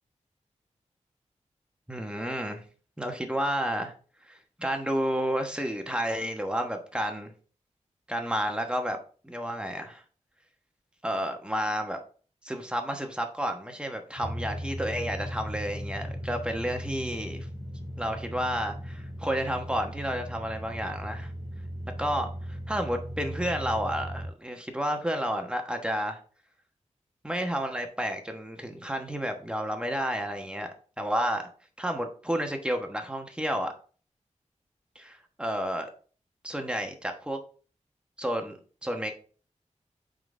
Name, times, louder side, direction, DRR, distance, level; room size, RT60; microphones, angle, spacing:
voice 1, 1.9-2.6 3.0-3.9 4.3-7.3 8.1-9.0 9.2-10.0 11.0-12.0 12.4-17.5 18.0-21.3 22.0-26.2 27.2-31.4 31.8-33.7 34.9-35.9 36.4-37.4 38.2-39.1, equal, 10° right, 4 dB, 1.1 m, -31 dB
sound 1, 14.2-24.3, equal, 35° left, 2.0 m, -37 dB
8.8 x 3.9 x 3.3 m, 0.41 s
wide cardioid pair, 110°, 12 cm